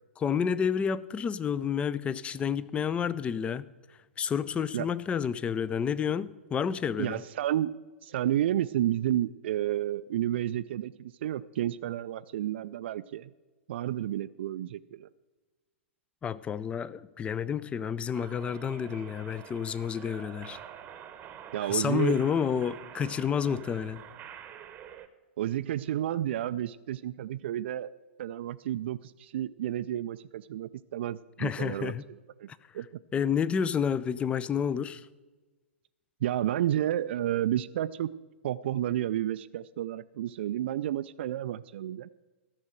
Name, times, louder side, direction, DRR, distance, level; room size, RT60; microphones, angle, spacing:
voice 1, 0.2-3.7 4.2-7.2 16.2-20.6 21.7-24.0 31.4-32.0 33.1-35.1, left 7 dB, 15° left, 0.4 m, -30 dB
voice 2, 7.0-7.7 8.0-13.3 13.7-15.1 21.5-22.2 25.4-27.9 28.2-32.5 32.7-32.9 36.2-38.1 38.4-42.1, right 12 dB, 60° right, 0.4 m, -31 dB
sound 1, 18.1-25.1, right 9 dB, 25° right, 0.9 m, -47 dB
13.0 x 6.3 x 7.8 m
hypercardioid pair, 115°, 7 cm